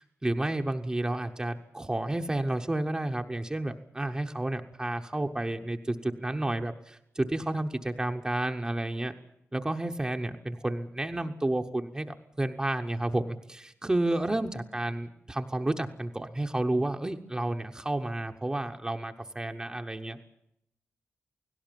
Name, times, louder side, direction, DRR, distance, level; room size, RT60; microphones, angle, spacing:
voice 1, 0.0-9.1 9.5-20.2, right 1 dB, 15° right, 4 dB, 0.9 m, -31 dB
18.0 x 17.0 x 9.2 m, 0.79 s
wide cardioid pair, 140°, 5 cm